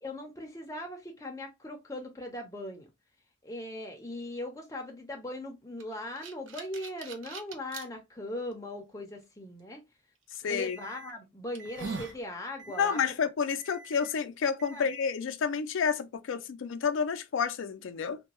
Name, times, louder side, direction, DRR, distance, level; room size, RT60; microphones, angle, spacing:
voice 1, 0.0-2.9 3.4-9.8 10.4-13.0 14.7-14.9 16.3-16.4, left 1 dB, 15° left, 0.6 m, -39 dB
sound 1, 5.8-7.9 8.5-8.6 10.3-10.5 11.1-11.2 11.5-12.2, right 4 dB, 70° right, 0.5 m, -41 dB
voice 2, 10.4-10.8 12.8-18.2, left 6 dB, 70° left, 0.4 m, -30 dB
Alarm, 10.6-11.1 11.6-12.1 12.6-13.1 13.6-14.1 14.6-15.1, right 2 dB, 50° right, 0.9 m, -51 dB
2.6 x 2.2 x 2.9 m
head